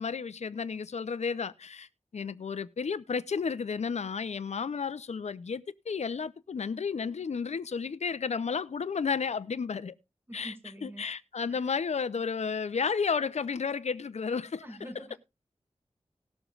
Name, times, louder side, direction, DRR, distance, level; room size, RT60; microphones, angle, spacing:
voice 1, 0.0-1.9 2.1-9.9 10.3-10.5 10.8-14.6, left 5 dB, 80° left, 0.6 m, -32 dB
voice 2, 10.3-11.1 11.4-11.7 14.6-15.2, equal, 20° right, 2.2 m, -45 dB
18.5 x 7.0 x 2.4 m
wide cardioid pair, 90°, 11 cm